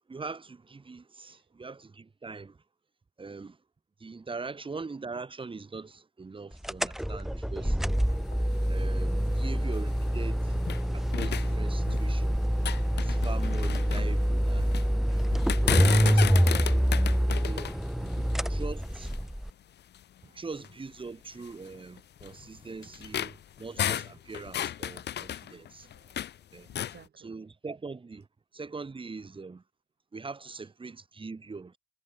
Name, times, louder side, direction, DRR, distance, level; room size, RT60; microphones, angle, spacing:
voice 1, 0.1-2.6 3.2-3.6 4.0-7.9 8.7-10.6 10.9-12.4 13.0-14.8 15.1-15.3 16.0-16.9 17.4-17.8 18.5-19.1 20.2-25.9 26.5-26.7 27.2-28.3 28.5-29.6 30.1-31.8, right 4 dB, 25° right, 2.1 m, -42 dB
sound 1, 6.6-19.5, equal, ahead, 1.2 m, -26 dB
sound 2, 7.9-10.8 11.1-12.2 12.5-14.9 15.3-19.3 19.9-20.0 20.5-20.7 21.4-26.4 26.7-27.0, left 10 dB, 60° left, 0.9 m, -34 dB
voice 2, 18.0-18.3 20.3-20.4 25.4-26.2 26.6-27.3, right 8 dB, 55° right, 7.0 m, -55 dB
cardioid pair, 90°, 20 cm